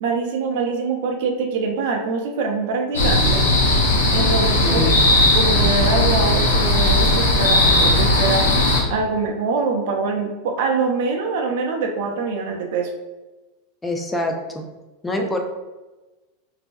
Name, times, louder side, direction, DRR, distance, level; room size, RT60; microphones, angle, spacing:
voice 1, 0.0-3.4 4.1-5.0 5.3-8.4 8.9-12.9 15.2-15.3, right 4 dB, 65° right, 2 dB, 0.4 m, -24 dB
sound 1, 2.9-8.8, left 1 dB, 85° left, 0.5 m, -17 dB
voice 2, 4.6-5.1 13.8-14.7 15.0-15.4, left 1 dB, 15° left, 2 dB, 0.4 m, -25 dB
2.4 x 2.2 x 2.5 m, 1.1 s
hypercardioid pair, 90°, 0 cm